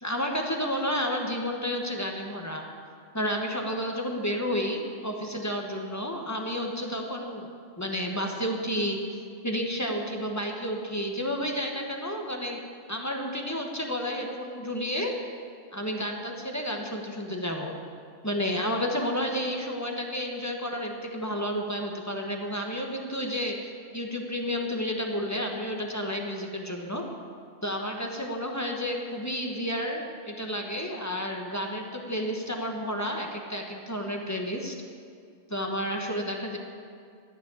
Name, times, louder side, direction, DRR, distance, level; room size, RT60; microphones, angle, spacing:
voice 1, 0.0-2.6 3.1-7.5 7.8-9.2 9.4-12.6 12.9-15.1 15.7-17.8 18.2-27.0 27.6-34.8 35.5-36.6, equal, 15° left, 1 dB, 1.2 m, -31 dB
12.5 x 6.8 x 8.7 m, 2.3 s
omnidirectional pair, 1.2 m